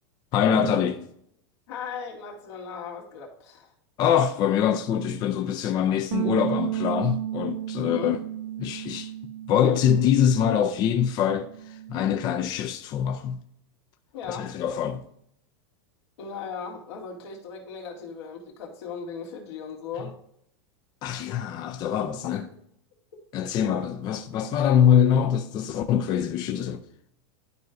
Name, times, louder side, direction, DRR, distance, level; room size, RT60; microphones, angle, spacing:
voice 1, 0.3-1.1 4.0-8.2 8.6-9.1 9.5-13.4 14.3-15.0 21.0-22.5 23.3-26.8, left 8 dB, 30° left, 0.4 m, -24 dB
voice 2, 1.7-3.7 7.8-8.2 14.1-14.5 16.2-20.1 22.2-22.4, left 6 dB, 80° left, 2.4 m, -37 dB
sound 1, 6.1-10.7 10.9-12.4, right 13 dB, 90° right, 0.6 m, -33 dB
12.0 x 4.6 x 2.6 m
supercardioid pair, 150°, 14 cm